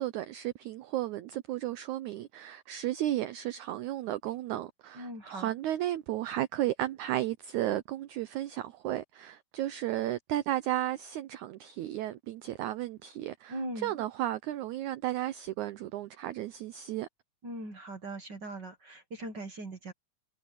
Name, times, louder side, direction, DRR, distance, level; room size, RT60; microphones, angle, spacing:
voice 1, 0.0-17.1, right 14 dB, 85° right, 1.7 m, -34 dB
voice 2, 4.9-5.5 13.5-13.9 17.4-19.9, right 1 dB, 45° right, 1.6 m, -40 dB
omnidirectional pair, 4.2 m